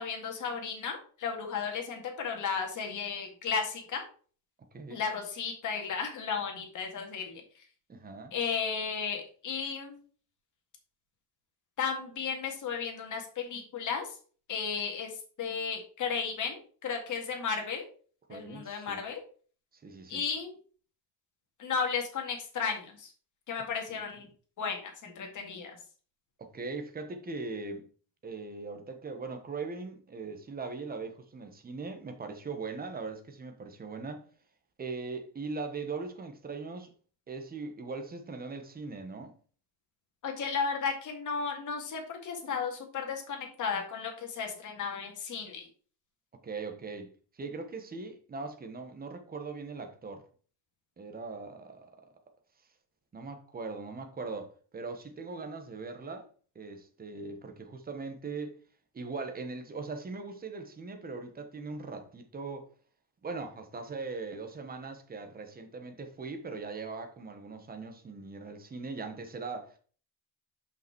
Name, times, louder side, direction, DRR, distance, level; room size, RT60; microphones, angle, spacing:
voice 1, 0.0-4.0 4.9-7.4 8.3-10.0 11.8-14.1 14.5-15.1 15.4-17.8 18.3-19.2 20.1-20.5 21.6-23.1 23.5-24.3 24.6-25.8 40.2-45.7, left 6 dB, 45° left, 2.1 m, -34 dB
voice 2, 4.7-5.1 7.9-8.3 18.3-19.0 19.8-20.2 23.9-24.0 26.4-27.9 28.2-34.3 34.8-36.9 37.3-39.3 46.4-47.1 47.4-50.2 51.0-52.1 53.1-56.3 56.5-58.6 58.9-62.7 63.2-69.8, right 4 dB, 20° right, 1.2 m, -40 dB
5.7 x 5.6 x 4.6 m
cardioid pair, 155°, 42 cm